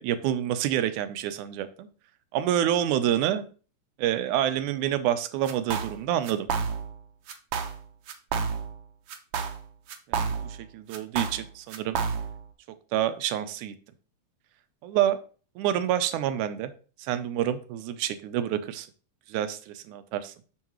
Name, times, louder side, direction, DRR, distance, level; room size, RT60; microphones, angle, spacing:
voice 1, 0.0-1.9 2.3-3.5 4.0-6.5 10.1-12.0 12.9-13.7 14.8-15.2 15.6-16.7 17.0-18.9 19.3-20.3, right 11 dB, 90° right, 11 dB, 2.1 m, -27 dB
sound 1, 5.5-6.0 6.2-7.0 7.3-7.8 8.1-8.8 9.1-10.6 10.9-12.4, right 6 dB, 70° right, 1.4 m, -30 dB
7.4 x 6.3 x 3.0 m, 0.37 s
omnidirectional pair, 3.4 m